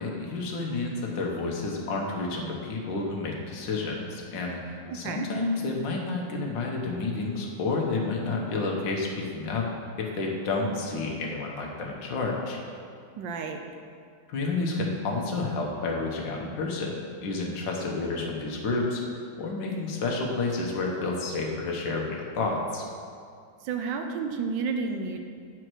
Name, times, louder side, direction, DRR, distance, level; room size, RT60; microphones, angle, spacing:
voice 1, 0.0-9.7 10.0-12.6 14.3-19.0 19.3-22.8, left 3 dB, 75° left, -1 dB, 1.7 m, -30 dB
voice 2, 4.9-5.3 13.2-13.6 23.6-25.2, right 5 dB, 85° right, 4 dB, 1.4 m, -31 dB
9.1 x 4.7 x 6.1 m, 2.2 s
omnidirectional pair, 2.0 m